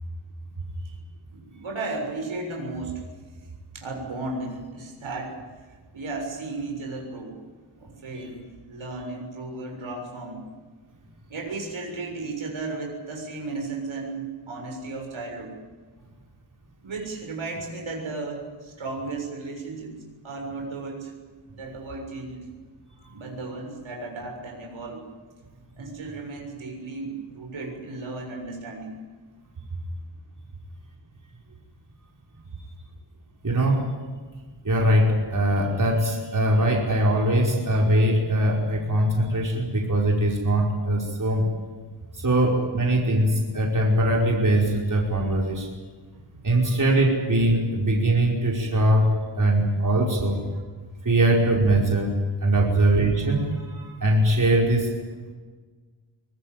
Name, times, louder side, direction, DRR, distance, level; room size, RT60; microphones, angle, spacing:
voice 1, 1.3-3.1 3.7-5.4 5.7-7.4 7.8-10.4 11.3-15.6 16.8-19.9 20.2-21.1 21.5-22.4 23.1-25.0 25.8-29.0 29.7-29.8 46.1-46.5, right 3 dB, 85° right, 1 dB, 6.9 m, -34 dB
voice 2, 33.4-33.9 34.6-41.4 42.2-45.7 46.4-50.4 51.0-52.1 52.4-54.9, right 1 dB, 40° right, -1 dB, 5.1 m, -21 dB
22.5 x 21.0 x 9.2 m, 1.4 s
wide cardioid pair, 95°, 46 cm